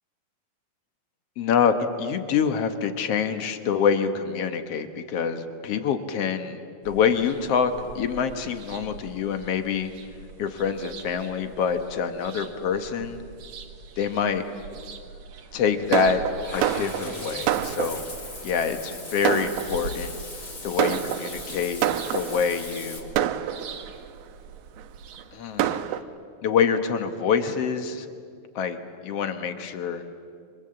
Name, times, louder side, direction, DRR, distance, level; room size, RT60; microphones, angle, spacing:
voice 1, 1.4-9.9 10.4-13.2 14.0-14.5 15.5-16.2 16.5-18.1 18.4-20.2 20.6-21.8 22.1-23.2 25.3-25.8 26.4-28.1 28.5-30.0, left 7 dB, 60° left, 8 dB, 1.6 m, -26 dB
sound 1, 6.8-25.2, right 5 dB, 60° right, 2.6 m, -43 dB
Fireworks, 15.9-18.3 18.9-19.0 19.2-20.1 20.8-22.6 23.2-24.1 24.8-24.9 25.2-25.3 25.6-26.0, right 11 dB, 75° right, 2.4 m, -27 dB
Water / Bathtub (filling or washing), 16.4-23.0, left 2 dB, 35° left, 4.0 m, -39 dB
29.0 x 25.0 x 7.7 m, 2.3 s
omnidirectional pair, 4.2 m